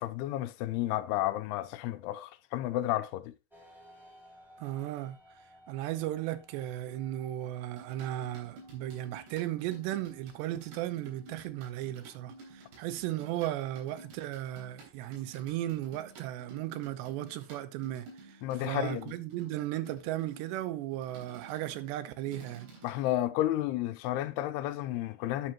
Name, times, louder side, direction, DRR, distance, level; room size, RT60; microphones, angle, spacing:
voice 1, 0.0-3.3 18.4-19.1 22.8-25.5, left 14 dB, 80° left, 2.5 m, -32 dB
sound 1, 3.5-17.1, equal, ahead, 2.7 m, -62 dB
voice 2, 4.6-5.2 5.7-22.7, right 14 dB, 90° right, 3.0 m, -36 dB
sound 2, 7.8-23.1, right 2 dB, 75° right, 5.6 m, -53 dB
12.5 x 7.5 x 2.9 m
omnidirectional pair, 4.9 m